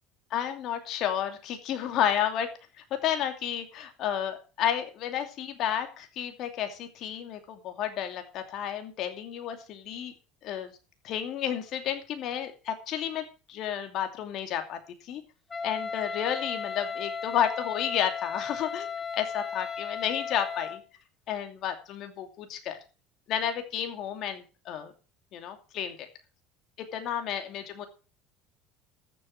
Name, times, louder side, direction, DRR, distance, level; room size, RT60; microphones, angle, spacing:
voice 1, 0.3-2.5 2.9-10.1 10.4-10.7 11.0-15.2 15.6-18.9 19.2-20.8 21.3-22.8 23.3-24.9 25.3-26.1 26.8-27.9, left 9 dB, 60° left, 6 dB, 2.6 m, -31 dB
Wind instrument woodwind instrument, 15.5-20.9, left 6 dB, 20° left, 1.5 m, -35 dB
13.5 x 7.7 x 6.4 m, 0.34 s
supercardioid pair, 95°, 0 cm